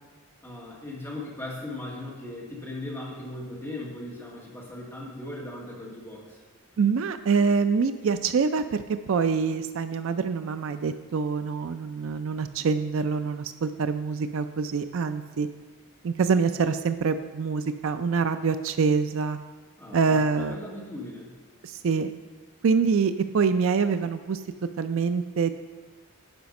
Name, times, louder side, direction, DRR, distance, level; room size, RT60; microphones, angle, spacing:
voice 1, 0.4-6.4 19.8-21.3, left 2 dB, 10° left, -5 dB, 1.9 m, -38 dB
voice 2, 6.8-15.5 16.0-19.4 19.9-20.6 21.6-22.1 22.6-24.4 24.8-25.5, right 5 dB, 60° right, 10 dB, 0.4 m, -25 dB
10.5 x 5.1 x 5.3 m, 1.4 s
head